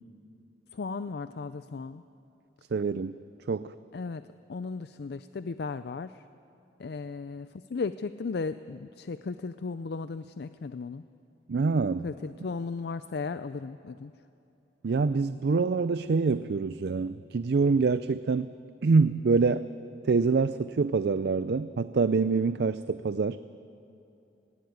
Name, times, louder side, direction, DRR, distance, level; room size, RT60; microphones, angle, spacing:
voice 1, 0.7-2.0 3.9-4.2 4.5-6.2 6.8-11.0 12.0-14.1, left 4 dB, 65° left, 13 dB, 0.4 m, -35 dB
voice 2, 2.7-3.2 3.5-3.7 11.5-12.1 14.8-18.5 18.8-19.7 20.0-23.4, right 4 dB, 65° right, 14 dB, 0.4 m, -25 dB
18.5 x 17.5 x 9.5 m, 2.8 s
head